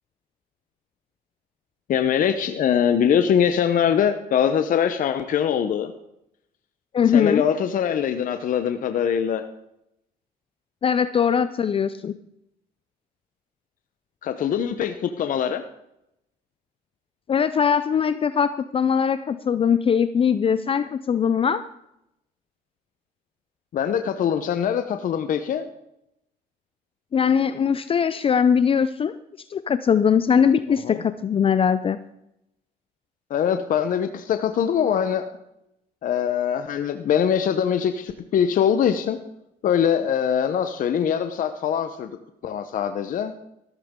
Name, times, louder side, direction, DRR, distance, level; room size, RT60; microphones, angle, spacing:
voice 1, 1.9-5.9 7.1-9.4 14.2-15.6 23.7-25.7 30.8-31.0 33.3-35.3 36.0-39.2 39.6-42.1 42.4-43.3, left 8 dB, 55° left, 8 dB, 0.9 m, -22 dB
voice 2, 6.9-7.5 10.8-12.1 17.3-21.6 27.1-29.1 29.5-32.0, left 7 dB, 35° left, 13 dB, 0.5 m, -21 dB
14.0 x 13.5 x 3.8 m, 0.82 s
cardioid pair, 110°, 17 cm